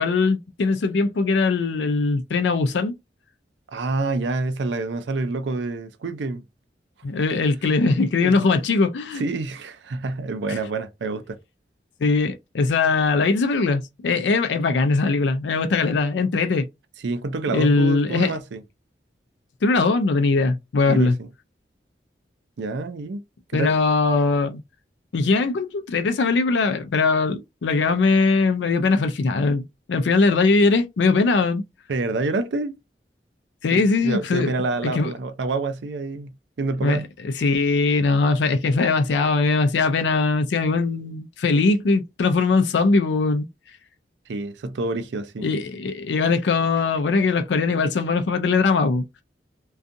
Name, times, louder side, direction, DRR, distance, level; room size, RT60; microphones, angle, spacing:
voice 1, 0.0-2.9 7.0-9.2 10.5-10.6 12.0-16.7 17.5-18.3 19.6-21.1 23.5-24.6 25.1-31.6 33.6-34.5 34.8-35.1 36.8-37.0 37.4-43.5 45.4-49.0, left 3 dB, 85° left, 0.4 m, -21 dB
voice 2, 3.7-6.4 8.2-8.4 9.1-11.4 17.0-18.6 20.9-21.3 22.6-23.2 23.5-23.8 31.9-32.8 33.7-36.3 36.6-37.1 44.3-45.5, right 3 dB, 85° right, 0.5 m, -27 dB
2.6 x 2.3 x 2.5 m
head